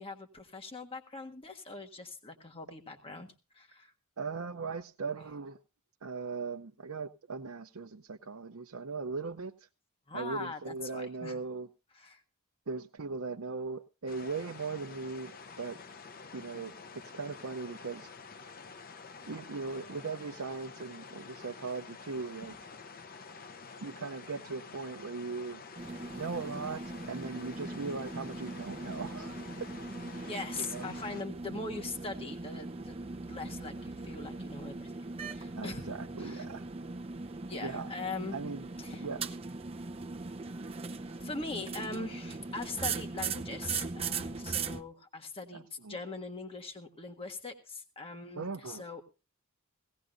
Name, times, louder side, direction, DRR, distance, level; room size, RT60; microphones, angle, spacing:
voice 1, 0.0-3.9 10.1-11.3 11.9-12.2 30.3-34.9 35.3-35.9 36.2-36.4 37.5-38.4 38.8-39.0 41.2-49.0, left 3 dB, 25° left, 1.5 m, -41 dB
voice 2, 4.2-5.6 6.0-9.7 10.1-11.7 12.7-15.8 16.3-18.1 19.3-22.6 23.8-25.6 26.1-29.4 30.1-30.3 30.6-30.9 35.5-36.7 37.6-37.9 38.3-38.7 39.0-39.2 45.5-46.0 48.4-48.8, right 4 dB, 70° right, 0.7 m, -39 dB
sound 1, 14.1-31.2, left 5 dB, 45° left, 0.7 m, -49 dB
sound 2, 25.8-44.8, right 4 dB, 25° right, 0.7 m, -40 dB
18.0 x 17.0 x 2.6 m
head